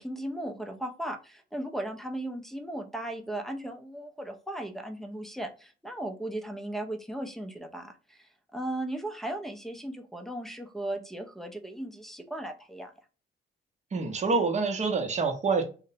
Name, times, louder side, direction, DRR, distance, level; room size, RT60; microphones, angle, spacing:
voice 1, 0.0-12.9, right 1 dB, ahead, 0.5 m, -37 dB
voice 2, 13.9-15.6, right 4 dB, 35° right, 0.7 m, -26 dB
2.7 x 2.0 x 2.6 m
cardioid pair, 90°, 20 cm